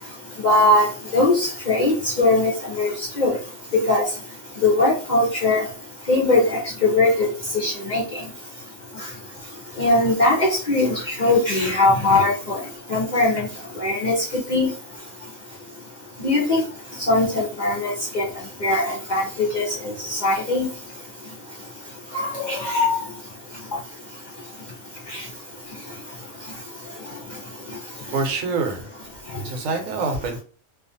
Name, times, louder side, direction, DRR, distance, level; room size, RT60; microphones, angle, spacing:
voice 1, 0.4-0.9 1.1-2.5 2.8-2.9 3.2-3.3 3.9-4.0 4.6-5.6 6.1-7.3 7.5-8.0 9.8-12.6 12.9-13.4 13.8-14.1 14.5-14.7 16.2-16.6 17.1-18.2 18.6-19.6 20.1-20.7 22.1-23.0, left 2 dB, 50° left, -3 dB, 0.6 m, -20 dB
voice 2, 28.1-28.9 29.4-30.4, right 4 dB, 80° right, 3 dB, 1.1 m, -25 dB
2.4 x 2.4 x 2.6 m, 0.37 s
omnidirectional pair, 1.4 m